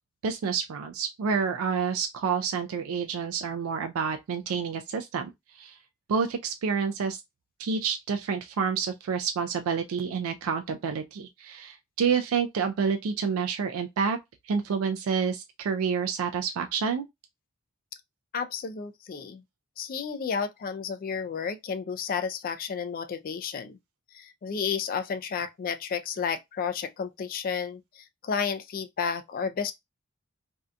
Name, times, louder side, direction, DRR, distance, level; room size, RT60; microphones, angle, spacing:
voice 1, 0.2-5.8 6.1-7.2 7.6-14.2 14.5-17.0, right 6 dB, 75° right, 0.3 m, -28 dB
voice 2, 18.3-19.4 19.8-23.8 24.1-29.7, left 6 dB, 40° left, 0.3 m, -32 dB
2.7 x 2.2 x 2.4 m
head